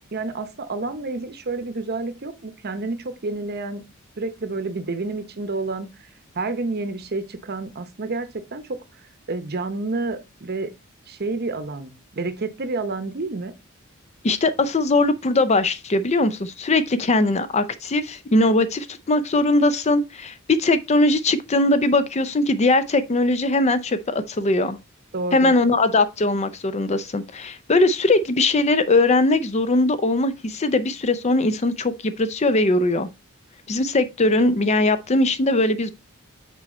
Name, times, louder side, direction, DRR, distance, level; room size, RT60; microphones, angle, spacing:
voice 1, 0.1-3.8 4.2-6.1 6.3-8.8 9.3-10.7 11.1-13.5 25.1-25.5, right 3 dB, 50° right, 0.8 m, -29 dB
voice 2, 14.2-24.8 25.3-33.1 33.7-35.9, left 2 dB, 30° left, 0.5 m, -20 dB
6.2 x 4.2 x 4.2 m
head